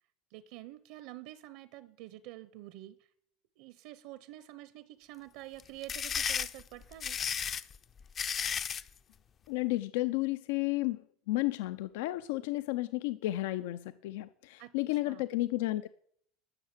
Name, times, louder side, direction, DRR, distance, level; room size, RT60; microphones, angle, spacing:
voice 1, 0.3-3.1 3.6-7.2 14.6-15.2, right 15 dB, 60° right, 15 dB, 0.7 m, -48 dB
sound 1, 5.6-8.9, left 7 dB, 25° left, 0.5 m, -34 dB
voice 2, 9.5-15.9, left 18 dB, 75° left, 14 dB, 0.5 m, -32 dB
13.0 x 6.5 x 8.8 m, 0.65 s
cardioid pair, 160°, 0 cm